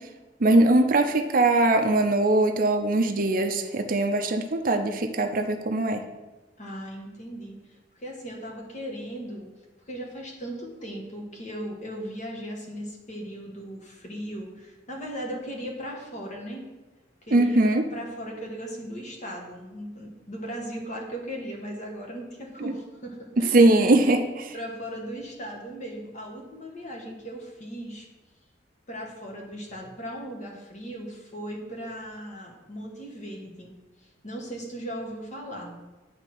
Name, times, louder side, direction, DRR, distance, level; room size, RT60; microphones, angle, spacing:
voice 1, 0.4-6.0 17.3-17.8 22.6-22.7 23.4-24.5, right 2 dB, 50° right, 6 dB, 0.6 m, -21 dB
voice 2, 6.6-9.5 9.9-16.7 17.2-24.1 24.5-28.1 28.9-33.8 34.2-35.8, equal, 40° left, 0 dB, 1.4 m, -38 dB
9.5 x 3.5 x 5.9 m, 1.1 s
head